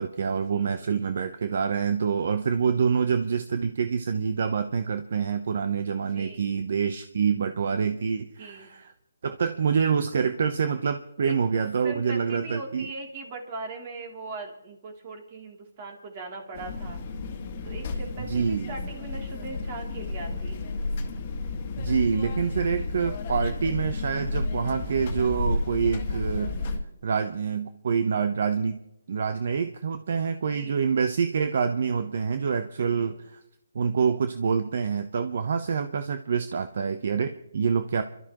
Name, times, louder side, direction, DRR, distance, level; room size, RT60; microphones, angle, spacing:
voice 1, 0.0-8.9 9.2-12.9 18.2-18.7 21.8-26.5 27.0-28.8 29.1-33.4 33.7-38.0, right 6 dB, 55° right, 9 dB, 0.8 m, -26 dB
voice 2, 0.5-0.9 6.1-6.5 8.4-8.7 11.2-17.0 17.6-20.7 30.3-30.8 32.8-33.2, right 3 dB, 35° right, 2 dB, 2.8 m, -40 dB
sound 1, 16.5-26.8, left 3 dB, 35° left, 1.7 m, -31 dB
28.5 x 12.5 x 3.0 m, 0.80 s
hypercardioid pair, 160°, 0 cm